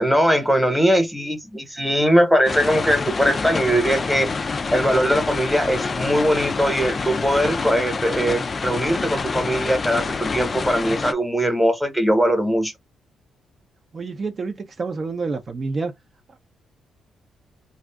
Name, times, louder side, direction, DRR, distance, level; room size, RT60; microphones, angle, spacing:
voice 1, 0.0-4.3 4.7-12.7, equal, ahead, 1.0 m, -20 dB
sound 1, 2.4-11.1, left 4 dB, 35° left, 0.3 m, -27 dB
voice 2, 13.9-15.9 16.3-16.4, right 4 dB, 35° right, 0.5 m, -28 dB
2.5 x 2.3 x 3.4 m
cardioid pair, 105°, 0 cm